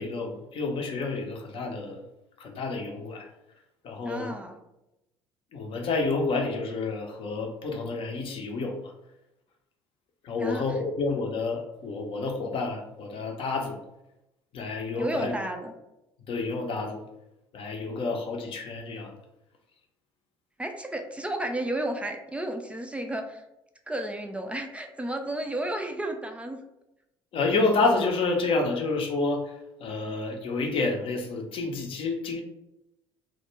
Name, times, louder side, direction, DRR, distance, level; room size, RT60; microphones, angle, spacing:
voice 1, 0.0-2.0 2.4-3.2 3.8-4.3 5.5-8.9 10.2-13.8 14.5-15.4 16.3-17.0 17.5-19.1 27.3-32.4, left 3 dB, 45° left, 2 dB, 0.6 m, -29 dB
voice 2, 4.0-4.6 10.4-10.7 15.0-15.7 20.6-23.4 23.9-26.6, right 1 dB, 10° right, 4 dB, 0.3 m, -32 dB
2.1 x 2.1 x 3.1 m, 0.90 s
figure-of-eight pair, 55°, 13 cm